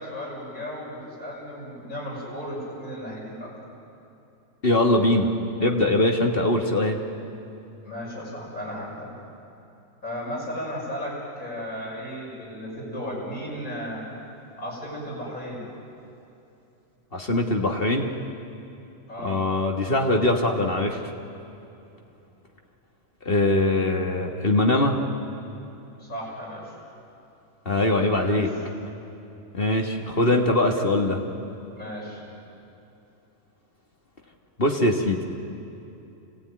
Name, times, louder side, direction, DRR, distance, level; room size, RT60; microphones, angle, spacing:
voice 1, 0.0-3.5 7.8-9.1 10.0-14.1 14.6-15.6 19.1-19.4 26.0-26.7 28.2-28.6 31.7-32.2, equal, 85° left, -5 dB, 6.8 m, -35 dB
voice 2, 4.6-5.3 5.6-7.0 17.1-18.1 19.2-21.0 23.3-25.0 27.7-28.5 29.5-31.2 34.6-35.2, left 1 dB, 45° left, 2 dB, 1.9 m, -22 dB
27.0 x 17.5 x 9.6 m, 2.8 s
omnidirectional pair, 1.4 m